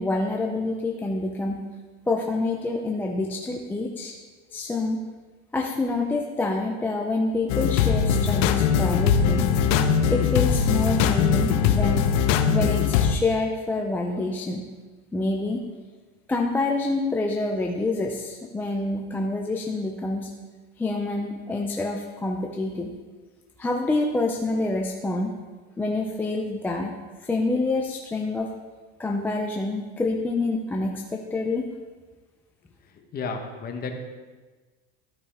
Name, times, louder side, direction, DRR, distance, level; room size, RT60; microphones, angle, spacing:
voice 1, 0.0-1.6 2.1-4.1 4.5-5.0 5.5-9.5 10.1-12.1 12.5-14.7 15.1-15.6 16.3-20.3 20.8-22.9 23.6-25.3 25.8-26.9 27.2-28.5 29.0-31.6, left 2 dB, 5° left, 1 dB, 0.3 m, -27 dB
sound 1, 7.5-13.2, left 7 dB, 60° left, 0.7 m, -21 dB
voice 2, 32.8-34.0, left 4 dB, 30° left, 4 dB, 1.0 m, -33 dB
13.0 x 5.3 x 3.5 m, 1.3 s
supercardioid pair, 140°, 33 cm